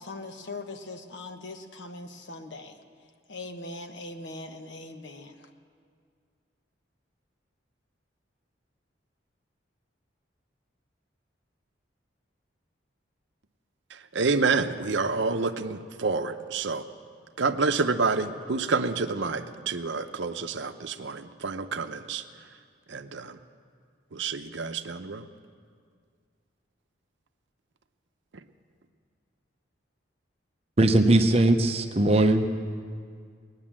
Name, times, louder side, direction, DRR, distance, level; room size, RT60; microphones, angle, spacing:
voice 1, 0.0-2.8 3.3-5.5, left 2 dB, 70° left, 6 dB, 1.1 m, -41 dB
voice 2, 13.9-16.8 17.4-22.2 22.9-23.4 24.1-25.3, right 4 dB, 75° right, 9 dB, 0.7 m, -28 dB
voice 3, 30.8-32.6, right 1 dB, 30° right, 6 dB, 0.8 m, -20 dB
20.0 x 9.7 x 7.4 m, 2.1 s
head